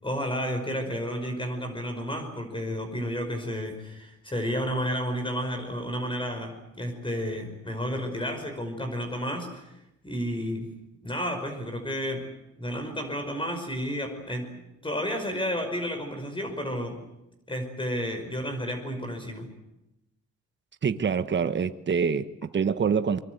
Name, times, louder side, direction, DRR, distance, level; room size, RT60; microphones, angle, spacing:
voice 1, 0.0-9.7 10.0-10.7 11.0-12.3 12.6-14.5 14.8-17.0 17.5-19.5, equal, 15° left, 5.5 m, -31 dB
voice 2, 20.8-23.2, right 6 dB, 40° right, 1.2 m, -26 dB
24.0 x 24.0 x 8.1 m
cardioid pair, 90°, 30 cm